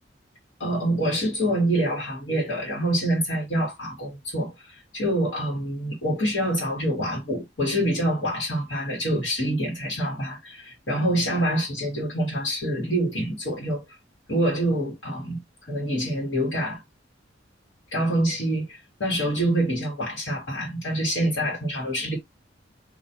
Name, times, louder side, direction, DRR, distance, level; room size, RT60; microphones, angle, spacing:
voice 1, 0.6-13.8 14.3-15.4 15.7-16.8 17.9-22.2, right 1 dB, 80° left, 1.2 m, -26 dB
2.3 x 2.3 x 2.7 m
head